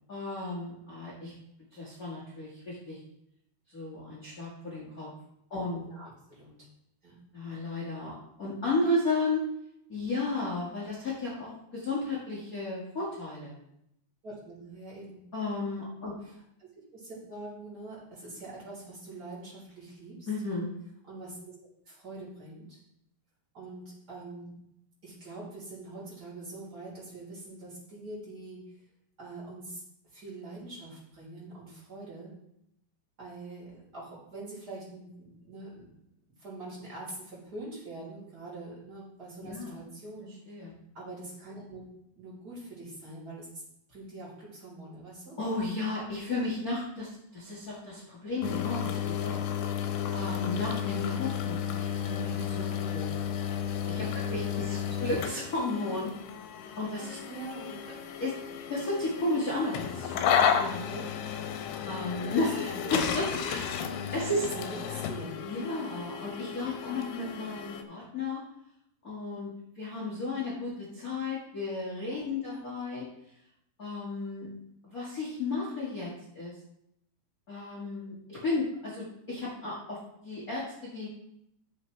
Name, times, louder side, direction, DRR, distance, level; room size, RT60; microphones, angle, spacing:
voice 1, 0.1-1.3 1.7-3.0 3.7-5.1 5.5-5.9 7.3-8.1 8.4-9.4 9.9-13.6 15.3-16.1 20.3-20.7 39.4-39.8 40.5-40.7 45.4-49.4 49.7-53.1 53.8-56.1 56.8-57.2 58.2-58.3 58.7-61.0 61.8-63.7 64.1-64.5 65.4-68.4 69.0-73.0 73.8-74.5 74.8-76.5 77.5-81.1, left 2 dB, 50° left, -7 dB, 1.0 m, -34 dB
voice 2, 5.8-6.5 7.0-7.1 14.2-15.2 16.2-20.3 21.0-21.5 21.9-22.8 23.5-24.6 25.0-28.6 29.2-29.8 30.1-32.3 33.2-35.9 36.4-40.4 40.9-41.8 42.1-43.6 43.9-45.4 54.2-54.9 57.3-57.8 62.4-62.9 63.8-63.9 64.5-65.5 66.9-67.2 72.4-72.7, right 2 dB, 25° right, -6 dB, 4.2 m, -44 dB
sound 1, 48.4-67.8, left 8 dB, 85° left, 2.7 m, -33 dB
11.5 x 7.1 x 3.3 m, 0.78 s
omnidirectional pair, 4.6 m